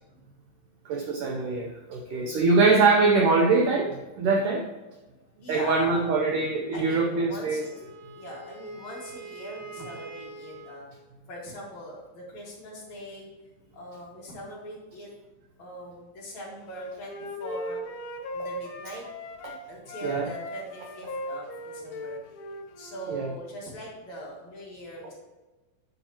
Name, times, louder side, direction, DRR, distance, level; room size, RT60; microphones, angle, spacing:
voice 1, 0.9-4.7 5.5-7.6 19.4-19.5 20.0-20.3 23.1-23.3, right 3 dB, 80° right, 1 dB, 1.9 m, -23 dB
voice 2, 2.1-2.5 5.3-6.1 6.7-7.7 8.2-10.9 11.3-13.3 13.7-15.1 15.6-17.1 17.4-17.8 18.3-19.0 19.7-22.2 22.8-25.1, equal, 50° left, -4 dB, 2.9 m, -41 dB
Wind instrument woodwind instrument, 7.6-10.8, right 3 dB, 55° right, 2.6 m, -44 dB
Wind instrument woodwind instrument 2, 16.7-19.6 19.9-23.4, left 1 dB, 80° left, 1.7 m, -38 dB
9.6 x 8.4 x 3.0 m, 1.1 s
omnidirectional pair, 4.7 m